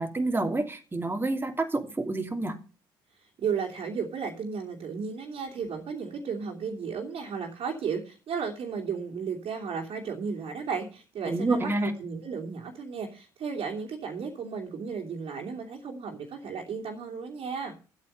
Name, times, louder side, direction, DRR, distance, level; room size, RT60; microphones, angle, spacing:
voice 1, 0.0-2.6 11.2-11.9, right 2 dB, 20° right, 2.7 m, -28 dB
voice 2, 3.4-17.8, right 6 dB, 55° right, 2.9 m, -34 dB
12.0 x 8.5 x 6.7 m
hypercardioid pair, 50°, 12 cm